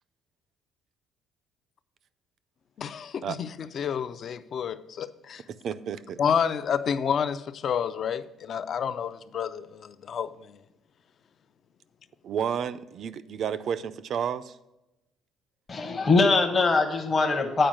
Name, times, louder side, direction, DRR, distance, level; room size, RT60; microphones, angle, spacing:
voice 1, 2.8-5.4 6.2-10.6, left 7 dB, 40° left, 0.4 m, -29 dB
voice 2, 5.6-6.2 12.2-14.6, right 8 dB, 45° right, 0.4 m, -31 dB
voice 3, 15.7-17.7, left 3 dB, 25° left, 0.8 m, -22 dB
8.8 x 5.0 x 6.2 m
cardioid pair, 170°, 0 cm